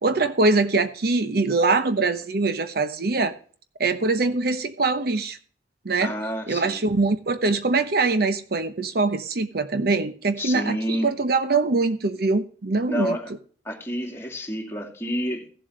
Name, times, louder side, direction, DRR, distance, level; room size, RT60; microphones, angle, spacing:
voice 1, 0.0-3.3 3.8-5.4 5.8-6.1 6.5-13.2, right 3 dB, 60° right, 0.9 m, -23 dB
voice 2, 6.0-6.9 10.4-11.1 12.9-13.3 13.6-15.5, equal, 15° left, 2.3 m, -29 dB
16.5 x 7.6 x 3.2 m
head